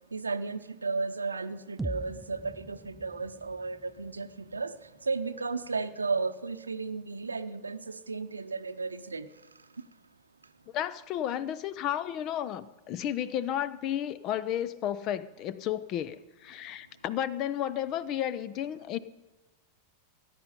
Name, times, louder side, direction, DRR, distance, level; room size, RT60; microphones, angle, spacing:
voice 1, 0.1-4.7 5.1-7.8 8.1-9.3, right 4 dB, 75° right, 11 dB, 0.8 m, -34 dB
sound 1, 1.8-5.8, right 2 dB, 10° right, 0.4 m, -43 dB
voice 2, 10.7-19.0, left 11 dB, 35° left, 17 dB, 0.6 m, -32 dB
18.0 x 10.0 x 5.4 m, 1.1 s
figure-of-eight pair, 90°, 0 cm